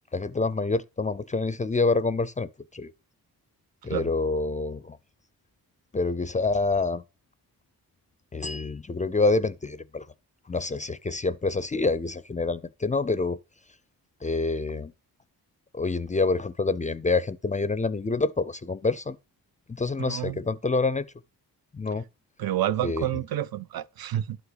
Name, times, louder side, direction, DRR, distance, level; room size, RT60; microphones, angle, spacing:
voice 1, 0.1-2.9 3.8-5.0 5.9-7.0 8.3-10.1 10.5-13.4 14.2-14.9 15.7-19.2 19.7-21.1 21.7-22.0 22.8-23.1, left 3 dB, 20° left, 0.4 m, -27 dB
voice 2, 20.0-20.4 22.4-24.4, right 12 dB, 70° right, 0.5 m, -29 dB
11.5 x 5.5 x 3.9 m
wide cardioid pair, 115°, 38 cm